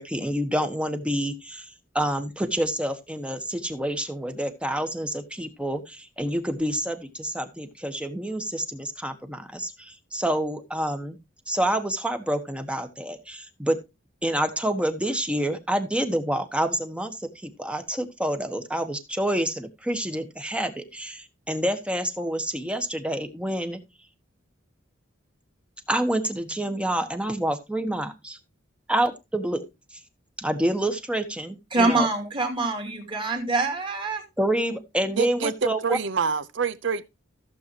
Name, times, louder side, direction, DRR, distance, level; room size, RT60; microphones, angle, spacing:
voice 1, 0.0-1.7 1.9-11.2 11.5-13.8 14.2-23.8 25.9-28.4 28.9-29.6 30.4-32.1 34.4-36.0, right 1 dB, 5° right, 1.2 m, -28 dB
voice 2, 31.7-34.2, right 3 dB, 25° right, 2.7 m, -25 dB
voice 3, 35.2-37.1, right 6 dB, 65° right, 0.8 m, -26 dB
15.0 x 7.4 x 3.0 m
head